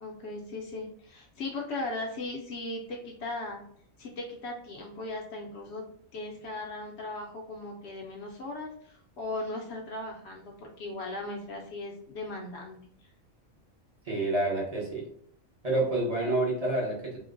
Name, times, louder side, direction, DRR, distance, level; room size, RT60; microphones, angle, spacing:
voice 1, 0.0-3.6 4.0-5.9 6.1-12.8, left 2 dB, 60° left, 0 dB, 0.7 m, -38 dB
voice 2, 14.1-15.0 15.6-17.2, right 2 dB, 35° right, -3 dB, 0.8 m, -28 dB
3.7 x 2.1 x 2.5 m, 0.63 s
omnidirectional pair, 1.5 m